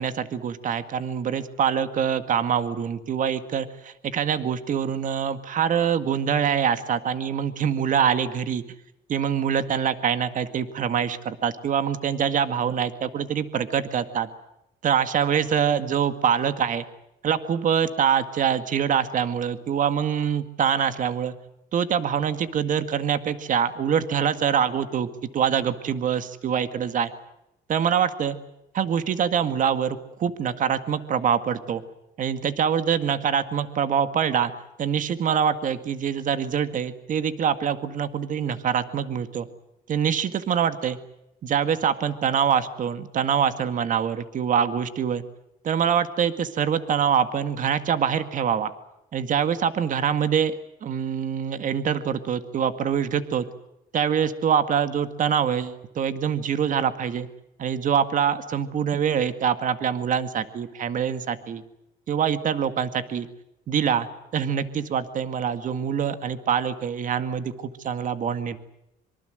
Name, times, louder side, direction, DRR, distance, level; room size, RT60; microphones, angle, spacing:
voice 1, 0.0-8.6 9.1-14.3 14.8-16.9 17.2-21.4 21.7-25.1 25.3-27.1 27.7-28.4 28.8-31.8 32.2-34.5 34.8-39.5 39.9-41.0 41.4-45.2 45.6-48.7 49.1-53.5 53.9-57.3 57.6-61.6 62.1-63.3 63.7-68.6, right 8 dB, 50° right, 10 dB, 2.0 m, -24 dB
25.5 x 24.5 x 7.9 m, 0.87 s
cardioid pair, 110°, 17 cm